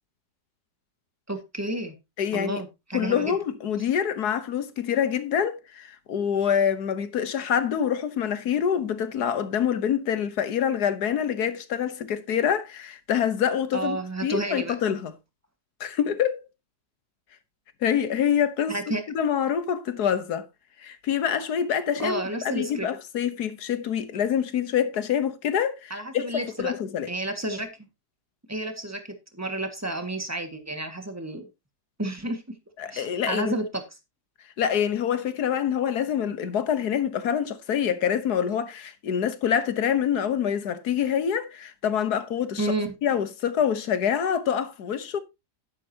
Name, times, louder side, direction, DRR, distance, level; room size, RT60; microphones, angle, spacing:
voice 1, 1.3-1.9 2.3-3.4 13.7-14.8 18.7-19.0 21.9-22.9 25.9-26.7 27.1-27.7 28.5-29.0 29.3-31.5 32.0-32.4 32.9-33.8 42.6-43.0, right 1 dB, 10° right, 1.7 m, -31 dB
voice 2, 2.2-2.6 2.9-15.1 15.8-16.5 17.8-18.7 19.1-20.4 20.8-26.3 26.6-27.1 32.8-33.5 34.6-42.7 43.0-45.2, left 8 dB, 70° left, 1.6 m, -26 dB
11.5 x 10.0 x 2.8 m
omnidirectional pair, 1.7 m